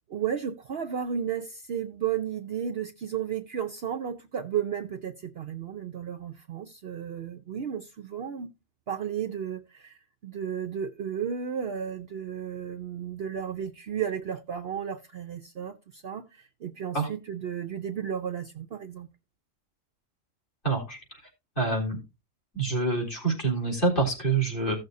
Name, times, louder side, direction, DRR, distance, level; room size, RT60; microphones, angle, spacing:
voice 1, 0.1-8.5 8.9-19.1, right 8 dB, 55° right, 0.8 m, -33 dB
voice 2, 20.6-21.0 21.6-22.0 22.5-24.7, right 3 dB, 40° left, 4.0 m, -26 dB
15.5 x 6.5 x 2.7 m
omnidirectional pair, 1.4 m